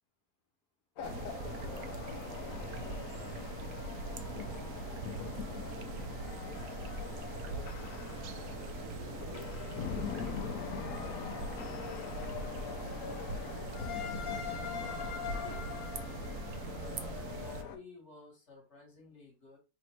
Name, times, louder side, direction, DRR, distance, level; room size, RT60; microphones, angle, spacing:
sound 1, 1.0-17.8, left 7 dB, 70° left, 0.8 m, -42 dB
sound 2, 1.0-17.6, right 4 dB, 85° right, 0.7 m, -42 dB
voice 1, 1.2-3.2 4.4-6.0 6.3-6.6 7.4-7.7 8.0-10.0, left 1 dB, 5° left, -1 dB, 0.6 m, -55 dB
sound 3, 7.7-12.3, left 7 dB, 85° left, 1.3 m, -55 dB
voice 2, 12.6-13.7 14.3-15.7 16.7-19.6, left 3 dB, 40° left, -1 dB, 1.5 m, -54 dB
3.4 x 2.5 x 4.3 m, 0.30 s
omnidirectional pair, 1.9 m